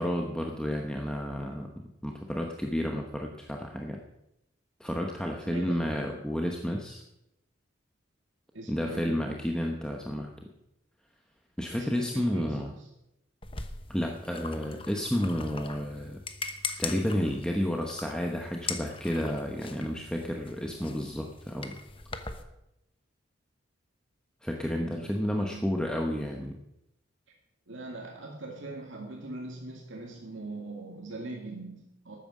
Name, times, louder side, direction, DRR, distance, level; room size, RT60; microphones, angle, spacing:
voice 1, 0.0-4.0 4.8-7.0 8.7-10.3 11.6-12.7 13.9-16.2 16.8-21.8 24.4-26.6, equal, 5° left, 1 dB, 1.0 m, -31 dB
voice 2, 5.4-5.9 8.5-9.2 11.7-12.9 24.8-25.9 27.7-32.2, right 2 dB, 70° right, -1 dB, 2.2 m, -42 dB
sound 1, 13.4-22.4, left 5 dB, 25° left, 1.0 m, -41 dB
13.0 x 9.3 x 7.4 m, 0.86 s
head